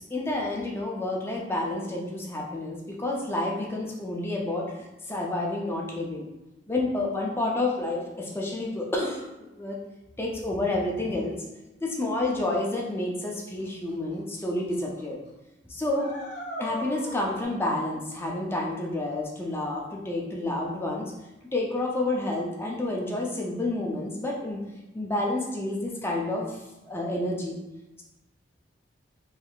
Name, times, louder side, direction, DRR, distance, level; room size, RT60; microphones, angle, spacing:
voice 1, 0.0-6.3 6.7-9.8 10.2-11.3 11.8-15.2 15.7-16.1 16.6-21.1 21.5-24.6 24.9-26.6 26.9-27.6, left 2 dB, 15° left, -2 dB, 0.4 m, -29 dB
sound 1, 13.9-14.0 14.4-14.7 15.0-15.1 15.9-17.4, left 1 dB, 70° left, 0.6 m, -37 dB
3.4 x 3.1 x 2.3 m, 1.0 s
head